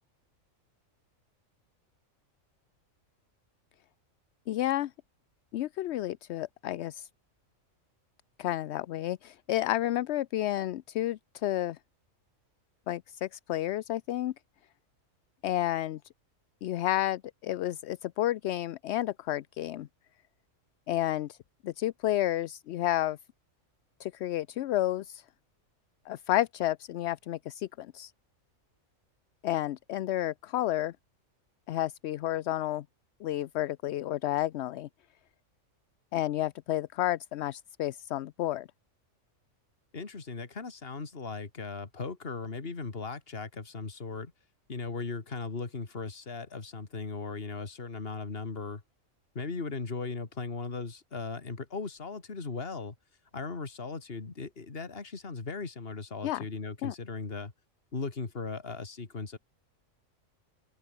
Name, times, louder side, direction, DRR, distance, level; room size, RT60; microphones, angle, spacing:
voice 1, 4.5-4.9 5.5-7.1 8.4-11.8 12.9-14.3 15.4-16.0 16.6-19.9 20.9-21.4 21.6-23.2 24.0-25.2 26.1-28.1 29.4-30.9 31.7-32.8 33.2-34.9 36.1-38.7 56.2-56.4 56.8-56.9, left 14 dB, 65° left, 0.7 m, -31 dB
voice 2, 39.9-44.3 44.7-48.8 49.3-53.0 53.3-57.5 57.9-59.4, left 4 dB, 45° left, 2.4 m, -38 dB
open air
omnidirectional pair, 1.4 m